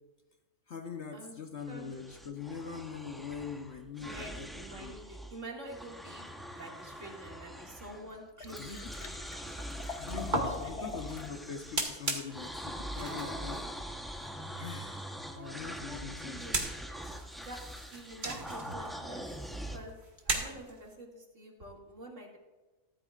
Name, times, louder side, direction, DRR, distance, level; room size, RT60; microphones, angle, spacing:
voice 1, 0.7-4.5 4.8-5.0 8.6-8.9 10.0-13.6 14.6-15.1 15.3-16.4, left 6 dB, 50° left, 4 dB, 1.1 m, -42 dB
sound 1, 1.6-5.4 5.6-8.2 8.5-19.8, equal, ahead, 0.7 m, -43 dB
voice 2, 4.0-9.1 10.6-10.9 13.0-13.5 15.3-15.6 15.9-16.6 17.4-17.6 17.9-19.3 19.7-20.0 20.2-22.4, right 1 dB, 55° right, -1 dB, 2.7 m, -47 dB
Liquid, 8.1-11.3 11.7-11.8, left 5 dB, 85° left, 1.5 m, -43 dB
sound 2, 8.6-20.9, right 2 dB, 30° right, 1.9 m, -40 dB
14.5 x 13.0 x 2.4 m, 1.2 s
omnidirectional pair, 1.6 m